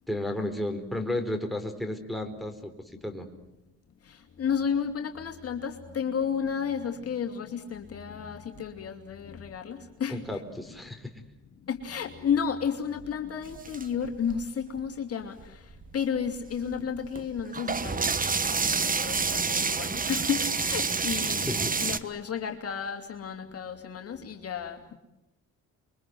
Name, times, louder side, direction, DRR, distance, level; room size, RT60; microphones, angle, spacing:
voice 1, 0.1-2.7 3.0-3.3 10.1-11.1 21.4-21.8, left 1 dB, ahead, 3 dB, 4.1 m, -33 dB
voice 2, 4.0-10.2 11.6-18.3 18.6-25.0, left 7 dB, 50° left, 4 dB, 2.9 m, -32 dB
sound 1, 13.4-14.8 15.4-15.5 15.7-22.0, right 4 dB, 30° right, 1.3 m, -28 dB
28.5 x 23.5 x 7.9 m, 0.92 s
cardioid pair, 90°, 30 cm